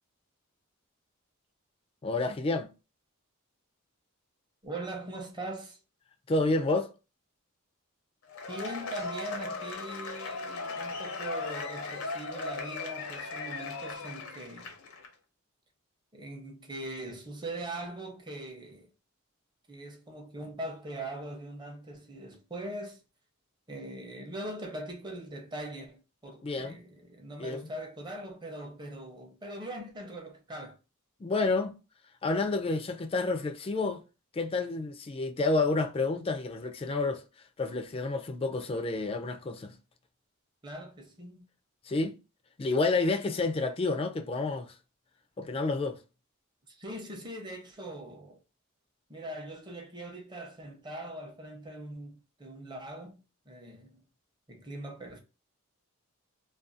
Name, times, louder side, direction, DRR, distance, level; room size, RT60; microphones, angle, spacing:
voice 1, 2.0-2.7 6.3-6.9 26.4-26.8 27.4-27.7 31.2-31.8 32.2-34.0 34.3-37.2 37.6-39.7 41.9-42.2 42.6-44.7 45.4-46.0, left 3 dB, 25° left, 0.3 m, -29 dB
voice 2, 4.6-5.8 8.5-14.7 16.1-18.9 19.7-23.0 23.7-30.8 40.6-41.5 46.7-48.4 49.1-53.2 53.5-54.0 54.5-55.2, right 1 dB, 20° right, 0.6 m, -41 dB
Cheering / Applause / Crowd, 8.3-15.1, left 3 dB, 80° left, 0.6 m, -37 dB
2.5 x 2.2 x 2.5 m
head